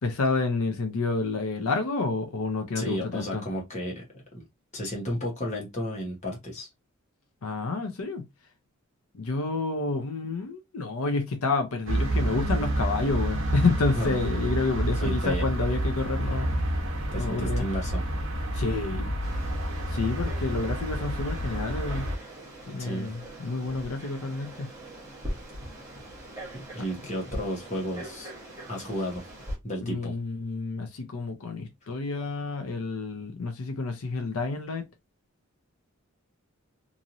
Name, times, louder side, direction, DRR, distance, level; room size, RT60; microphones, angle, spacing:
voice 1, 0.0-3.4 7.4-8.2 9.1-16.6 17.1-17.6 18.5-19.1 19.9-22.1 22.7-24.7 27.0-27.1 29.8-34.8, left 3 dB, 80° left, 0.6 m, -29 dB
voice 2, 2.7-4.4 4.7-6.7 13.9-14.2 15.0-15.4 17.1-18.0 22.8-23.1 26.5-28.3 28.7-29.3 29.6-30.1, equal, 30° left, 1.1 m, -33 dB
sound 1, 11.9-22.2, right 1 dB, 60° right, 0.9 m, -29 dB
Frog, 19.2-29.6, right 1 dB, 15° right, 1.0 m, -42 dB
3.0 x 2.6 x 2.6 m
head